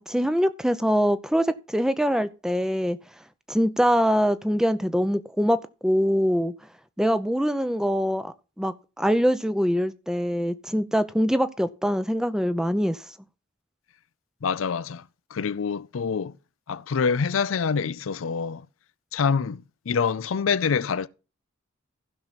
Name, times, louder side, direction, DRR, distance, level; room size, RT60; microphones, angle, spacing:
voice 1, 0.1-3.0 3.5-5.6 5.8-6.5 7.0-13.0, equal, 5° right, 0.5 m, -23 dB
voice 2, 14.4-15.0 15.3-16.3 16.7-18.6 19.1-21.1, left 6 dB, 80° left, 0.5 m, -26 dB
15.0 x 6.0 x 4.1 m
head